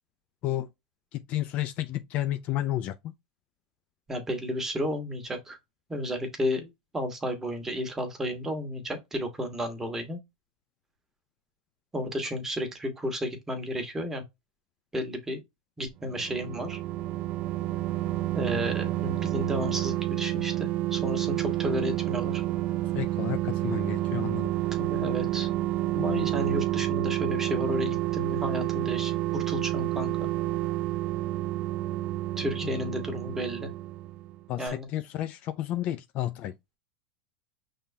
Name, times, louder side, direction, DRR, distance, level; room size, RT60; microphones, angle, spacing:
voice 1, 1.1-3.1 22.9-24.5 34.5-36.5, left 13 dB, 45° left, 0.5 m, -31 dB
voice 2, 4.1-5.6 5.9-10.2 11.9-14.2 14.9-15.4 15.8-16.8 18.3-22.4 24.8-25.5 25.9-30.1 32.4-33.7 34.6-34.9, equal, 10° right, 1.5 m, -32 dB
sound 1, 16.0-34.4 34.7-34.8, right 16 dB, 40° right, 0.4 m, -29 dB
5.6 x 3.5 x 2.7 m
supercardioid pair, 130°, 3 cm